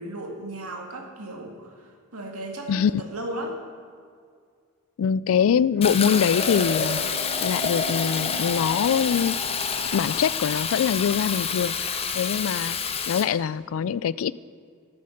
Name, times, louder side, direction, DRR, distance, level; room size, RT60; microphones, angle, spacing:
voice 1, 0.0-3.6, right 1 dB, 80° right, 2 dB, 2.0 m, -35 dB
voice 2, 2.7-3.0 5.0-7.0 7.4-9.4 9.9-12.8 13.1-14.3, left 7 dB, 60° left, 19 dB, 0.3 m, -23 dB
Bowed string instrument, 5.6-11.3, right 1 dB, ahead, 3.2 m, -42 dB
Fill (with liquid), 5.8-13.3, left 6 dB, 25° left, 0.7 m, -28 dB
13.0 x 8.7 x 6.4 m, 2.1 s
head